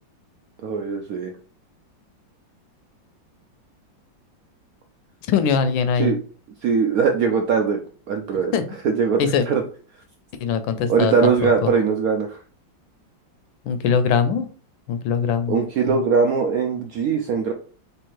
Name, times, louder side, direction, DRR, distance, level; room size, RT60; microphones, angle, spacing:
voice 1, 0.6-1.3 6.0-6.2 6.6-7.8 8.1-8.5 8.8-9.6 10.9-12.4 15.5-17.5, right 5 dB, 75° right, 4 dB, 0.8 m, -21 dB
voice 2, 5.3-6.2 8.5-8.6 9.2-9.5 10.4-11.7 13.6-14.5 14.9-15.6 15.9-16.0, left 6 dB, 80° left, 11 dB, 1.3 m, -21 dB
3.4 x 3.3 x 4.6 m, 0.41 s
omnidirectional pair, 2.1 m